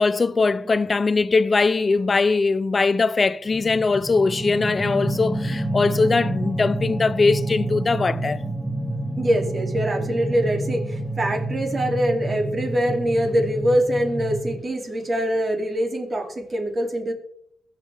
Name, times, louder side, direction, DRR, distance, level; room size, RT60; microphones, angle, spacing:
voice 1, 0.0-8.4, left 4 dB, 35° left, 0.6 m, -21 dB
sound 1, 3.5-14.6, right 1 dB, 15° left, 3.3 m, -28 dB
voice 2, 9.2-17.1, equal, 35° right, 2.9 m, -24 dB
22.0 x 7.4 x 3.5 m
cardioid pair, 90°, 0 cm